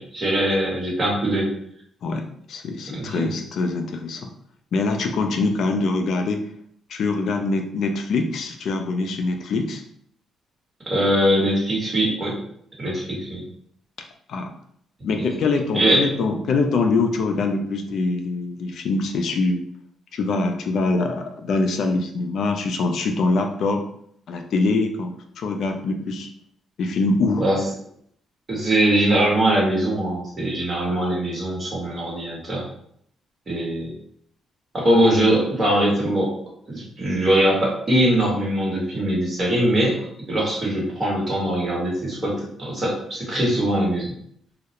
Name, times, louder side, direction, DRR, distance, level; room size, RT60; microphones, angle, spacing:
voice 1, 0.0-1.5 3.0-3.3 10.9-12.4 12.8-13.4 15.7-16.0 27.4-27.6 28.5-32.7 33.5-33.9 34.7-36.3 36.7-40.0 40.3-44.1, right 1 dB, 35° right, -3 dB, 1.1 m, -21 dB
voice 2, 2.5-4.3 4.7-6.5 6.9-9.8 14.3-14.5 15.0-19.6 20.1-23.8 24.3-26.3 26.8-27.4, left 3 dB, 65° left, 4 dB, 0.3 m, -23 dB
2.3 x 2.0 x 2.8 m, 0.67 s
cardioid pair, 90°, 0 cm